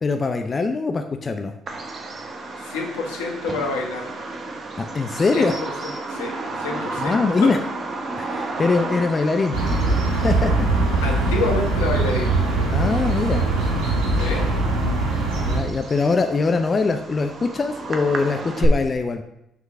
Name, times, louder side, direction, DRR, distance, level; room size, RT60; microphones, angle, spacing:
voice 1, 0.0-1.5 4.8-5.6 7.0-7.6 8.2-9.6 10.1-10.7 12.7-13.5 15.4-19.2, left 4 dB, 35° left, 6 dB, 0.5 m, -22 dB
Bird vocalization bird call bird song, 1.7-18.7, right 3 dB, 45° right, 1.0 m, -33 dB
voice 2, 2.6-4.2 5.3-5.5 6.1-7.1 11.0-12.3 14.1-14.5, left 3 dB, 85° left, 0 dB, 1.2 m, -27 dB
sound 1, 9.5-15.6, right 2 dB, 80° right, 1.5 m, -21 dB
5.9 x 3.7 x 5.5 m, 0.82 s
hypercardioid pair, 55°, 0 cm